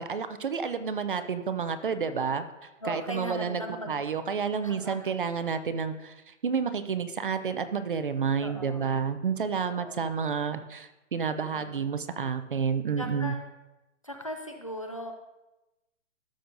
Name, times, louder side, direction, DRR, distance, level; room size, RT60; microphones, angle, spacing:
voice 1, 0.0-13.3, right 6 dB, 45° right, 11 dB, 0.5 m, -30 dB
voice 2, 2.8-4.0 4.6-5.1 8.4-9.0 9.5-10.0 11.5-11.9 13.0-13.4 14.0-15.1, equal, 30° left, 3 dB, 0.4 m, -38 dB
12.5 x 6.7 x 2.5 m, 1.0 s
hypercardioid pair, 165°, 38 cm